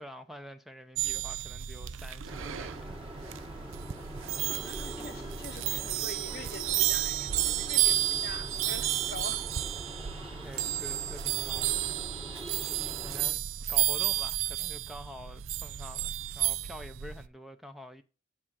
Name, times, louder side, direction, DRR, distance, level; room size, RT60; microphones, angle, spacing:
voice 1, 0.0-3.5 10.4-11.9 13.0-13.4 13.7-18.0, equal, ahead, 0.6 m, -47 dB
sound 1, 1.0-17.3, right 13 dB, 90° right, 0.5 m, -32 dB
sound 2, 2.3-13.3, right 1 dB, 25° right, 2.5 m, -44 dB
voice 2, 4.1-9.5, left 4 dB, 50° left, 0.7 m, -45 dB
10.5 x 3.7 x 6.2 m
head